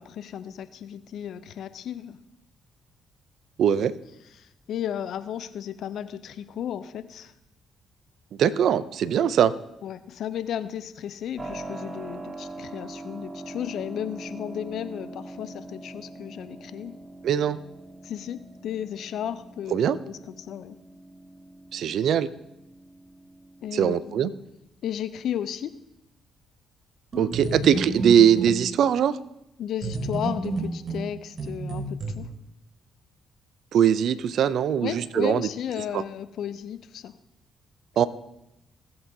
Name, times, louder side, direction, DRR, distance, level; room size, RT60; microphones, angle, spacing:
voice 1, 0.0-2.2 4.4-7.3 9.8-17.0 18.0-19.8 20.1-20.8 23.6-24.3 24.8-25.8 29.6-32.3 34.8-37.1, left 9 dB, 70° left, 14 dB, 0.5 m, -34 dB
voice 2, 3.6-3.9 8.4-9.5 17.2-17.6 19.7-20.0 21.7-22.3 23.7-24.3 27.2-29.2 33.7-35.5 35.9-36.0 38.0-38.1, right 9 dB, 65° right, 16 dB, 0.5 m, -21 dB
Keyboard (musical), 11.4-24.1, right 2 dB, 30° right, 1.7 m, -42 dB
sound 1, 27.1-28.6 29.8-32.1, right 3 dB, 50° right, 4.2 m, -30 dB
18.0 x 7.9 x 2.8 m, 0.86 s
hypercardioid pair, 50°, 0 cm